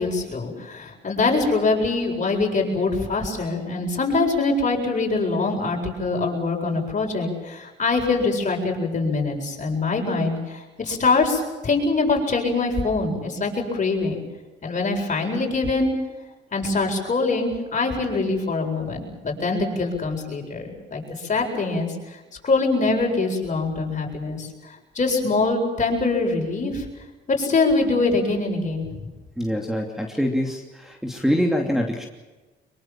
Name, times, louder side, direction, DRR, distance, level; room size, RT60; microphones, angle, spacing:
voice 1, 0.0-14.2 14.6-15.9 16.5-21.9 22.4-24.5 25.0-26.9 27.3-28.8, left 3 dB, 40° left, 1 dB, 7.7 m, -23 dB
voice 2, 29.4-32.0, equal, ahead, 2 dB, 2.8 m, -24 dB
24.5 x 22.5 x 7.5 m, 1.2 s
cardioid pair, 90°, 20 cm